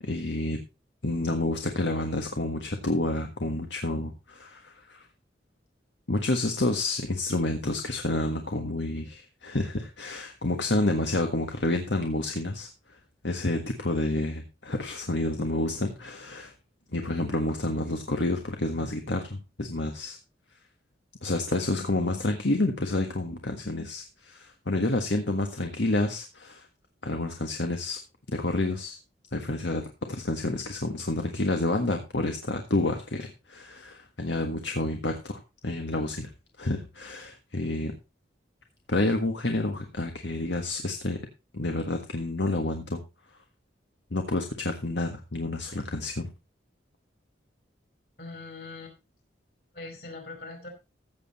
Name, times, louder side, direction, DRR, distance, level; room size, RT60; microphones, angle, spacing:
voice 1, 0.0-0.6 1.0-5.1 6.1-12.7 13.2-16.5 16.9-20.2 21.2-26.7 27.0-28.0 28.3-29.0 29.3-36.3 36.6-37.9 38.9-41.2 41.5-43.0 44.1-46.3, left 2 dB, 70° left, 5 dB, 1.6 m, -29 dB
voice 2, 48.2-48.9 49.7-50.7, left 3 dB, 55° left, 4 dB, 4.9 m, -42 dB
15.0 x 7.7 x 4.2 m, 0.27 s
head